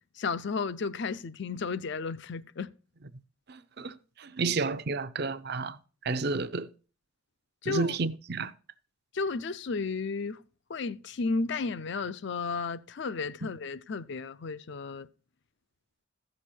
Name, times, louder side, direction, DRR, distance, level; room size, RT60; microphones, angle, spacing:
voice 1, 0.2-2.7 7.6-8.0 9.1-10.4 10.7-15.1, left 4 dB, 55° left, 0.5 m, -33 dB
voice 2, 3.5-5.8 6.0-6.7 7.7-8.5, right 4 dB, 50° right, 0.6 m, -31 dB
15.0 x 6.5 x 4.3 m
head